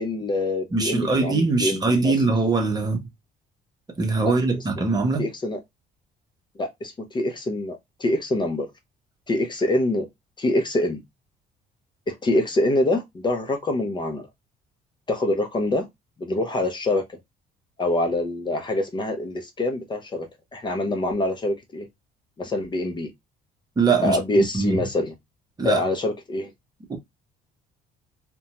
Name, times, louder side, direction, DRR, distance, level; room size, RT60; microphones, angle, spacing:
voice 1, 0.0-2.1 4.2-4.6 5.2-5.6 6.6-8.7 9.3-10.1 10.4-11.0 12.1-14.3 15.1-15.9 16.2-17.2 17.8-21.9 22.4-23.1 24.0-25.1 25.6-26.5, left 1 dB, 25° left, 0.6 m, -25 dB
voice 2, 0.7-3.1 4.0-5.3 23.8-24.8 25.6-25.8 26.9-27.0, right 3 dB, 25° right, 0.8 m, -22 dB
2.5 x 2.2 x 2.9 m
cardioid pair, 110°, 17 cm